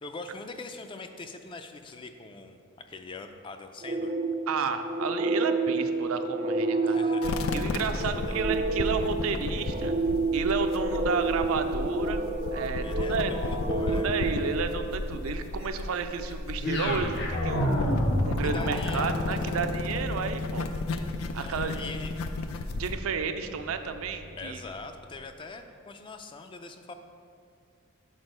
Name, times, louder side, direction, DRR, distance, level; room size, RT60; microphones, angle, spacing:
voice 1, 0.0-4.1 6.9-7.4 7.9-8.4 12.8-14.1 18.4-19.8 21.4-22.1 24.3-26.9, left 3 dB, 25° left, 7 dB, 0.3 m, -42 dB
sound 1, 3.8-15.1, right 2 dB, 35° right, 0.5 m, -30 dB
voice 2, 4.5-7.1 7.5-10.0 10.3-12.2 12.5-13.3 13.9-20.7 21.3-21.8 22.7-24.6, right 5 dB, 90° right, 8 dB, 0.5 m, -32 dB
sound 2, 7.2-23.0, left 3 dB, 90° left, 0.4 m, -33 dB
sound 3, 16.6-24.8, equal, 55° left, 0.8 m, -32 dB
6.3 x 4.3 x 5.3 m, 2.4 s
head